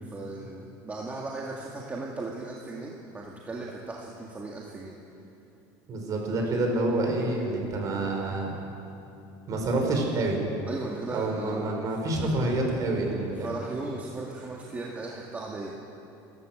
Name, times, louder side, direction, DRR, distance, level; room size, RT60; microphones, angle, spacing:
voice 1, 0.0-4.9 10.7-11.8 13.4-15.7, right 3 dB, 15° right, -2 dB, 1.9 m, -37 dB
voice 2, 5.9-8.5 9.5-10.4 11.1-13.5, right 2 dB, 35° right, 1 dB, 5.3 m, -27 dB
27.5 x 14.0 x 7.8 m, 2.8 s
cardioid pair, 150°, 10 cm